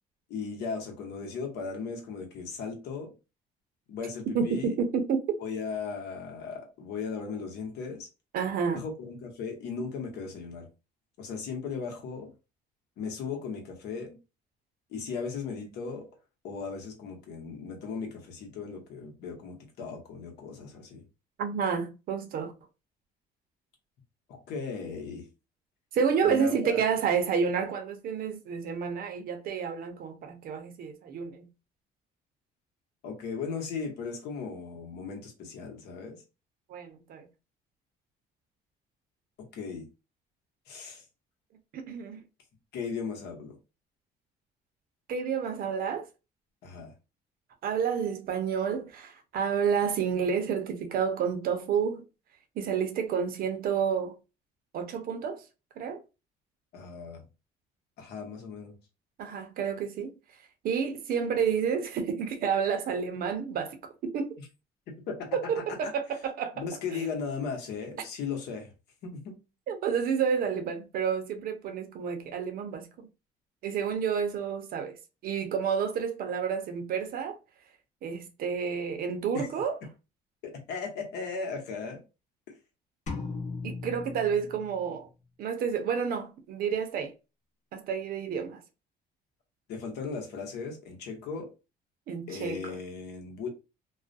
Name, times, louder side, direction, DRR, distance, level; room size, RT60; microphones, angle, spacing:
voice 1, 0.3-3.1 3.9-4.7 5.4-8.1 8.7-10.7 11.2-12.3 13.0-14.2 14.9-16.1 16.4-21.0 24.3-25.3 26.2-26.8 33.0-36.2 39.5-39.8 40.7-41.0 42.7-43.6 46.6-46.9 56.7-57.3 58.0-58.7 65.1-65.3 65.8-65.9 66.5-68.7 69.0-69.3 79.3-79.5 80.4-82.0 89.7-91.5 92.3-93.5, left 5 dB, 75° left, 0.9 m, -37 dB
voice 2, 4.3-5.4 8.3-8.8 21.4-22.5 25.9-31.5 36.7-37.3 41.7-42.2 45.1-46.1 47.6-52.0 52.6-54.1 54.7-55.4 55.8-56.0 59.2-60.1 60.6-64.4 65.3-66.6 66.9-67.0 69.7-73.1 73.6-75.0 75.2-77.4 78.0-79.8 83.6-85.1 85.4-87.1 87.7-88.6 92.1-92.8, right 6 dB, 60° right, 0.6 m, -30 dB
sound 1, 83.1-85.0, left 4 dB, 45° left, 0.7 m, -37 dB
2.3 x 2.1 x 2.5 m
cardioid pair, 110°, 17 cm